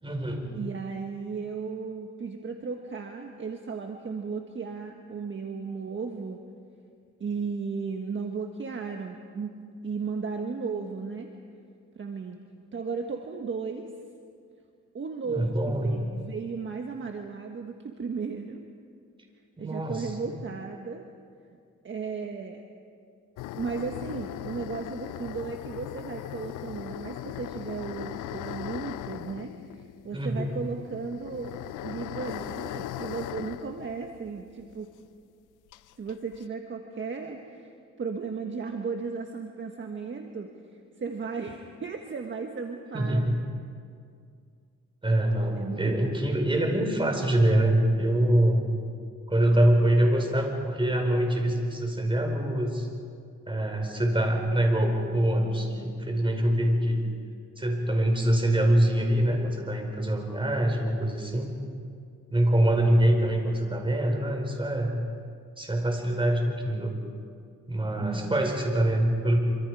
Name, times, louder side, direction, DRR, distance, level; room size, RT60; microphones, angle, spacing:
voice 1, 0.0-0.5 15.2-16.0 19.6-20.1 30.1-30.6 42.9-43.4 45.0-48.7 49.3-52.9 53.5-57.0 57.6-61.5 62.3-65.0 65.6-67.0 67.7-69.4, right 1 dB, 15° right, 2 dB, 4.9 m, -24 dB
voice 2, 0.5-6.4 7.2-9.5 9.8-11.3 11.9-12.4 12.7-13.9 14.9-18.6 19.6-21.0 21.8-22.6 23.5-31.5 31.8-34.9 36.0-37.7 38.0-40.5 41.0-43.4 45.6-46.2 68.0-68.5, right 5 dB, 40° right, 3 dB, 1.6 m, -35 dB
sound 1, 23.4-34.8 35.0-35.1 35.7-36.4, left 14 dB, 90° left, 0.6 m, -39 dB
26.0 x 25.5 x 4.9 m, 2.3 s
cardioid pair, 90°, 30 cm